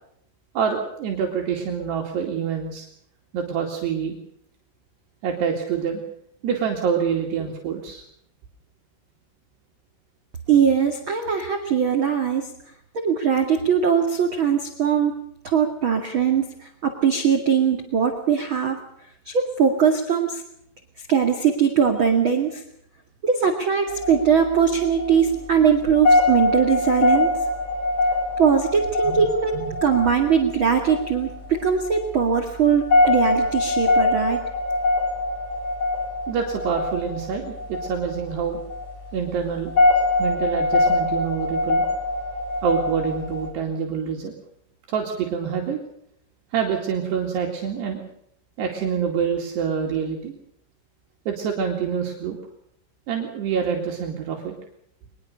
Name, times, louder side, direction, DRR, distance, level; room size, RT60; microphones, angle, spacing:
voice 1, 0.6-2.9 3.3-4.1 5.2-6.0 6.4-8.0 29.0-29.2 29.5-29.8 36.3-38.6 39.1-39.8 40.2-41.8 42.6-44.3 44.9-45.8 46.5-48.0 48.6-50.3 51.3-52.4 53.1-54.5, right 7 dB, 70° right, 1 dB, 4.4 m, -26 dB
voice 2, 10.5-12.5 12.9-15.1 15.4-18.8 19.3-20.4 21.1-22.6 23.2-27.3 28.4-34.4, right 7 dB, 40° right, 4 dB, 2.0 m, -21 dB
sound 1, 23.9-43.5, left 2 dB, 30° left, 5.5 m, -23 dB
23.5 x 21.0 x 6.6 m, 0.71 s
omnidirectional pair, 5.1 m